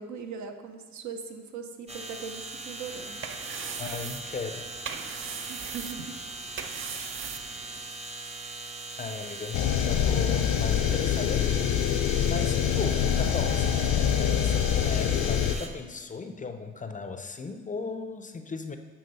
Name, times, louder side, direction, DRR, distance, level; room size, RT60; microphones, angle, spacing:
voice 1, 0.0-3.2 5.5-6.2 6.9-7.3, right 5 dB, 70° right, 5 dB, 0.8 m, -40 dB
sound 1, 1.9-15.7, right 2 dB, 20° right, 0.8 m, -40 dB
sound 2, 2.8-8.0, right 6 dB, 40° right, 0.5 m, -40 dB
voice 2, 3.8-4.7 9.0-11.7 12.3-18.8, left 4 dB, 25° left, 8 dB, 0.5 m, -36 dB
sound 3, 9.5-15.6, left 9 dB, 75° left, 0.6 m, -25 dB
8.5 x 3.4 x 5.4 m, 1.4 s
cardioid pair, 90°, 30 cm